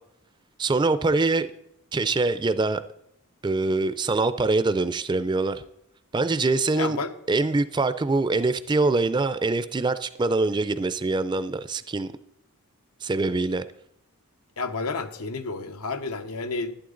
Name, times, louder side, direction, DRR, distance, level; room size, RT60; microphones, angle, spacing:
voice 1, 0.6-1.5 1.9-2.8 3.4-5.6 6.1-7.0 7.3-12.1 13.0-13.6, right 3 dB, 20° right, 0.4 m, -24 dB
voice 2, 6.8-7.1 14.6-16.7, left 3 dB, 90° left, 0.9 m, -30 dB
11.5 x 11.0 x 3.8 m
head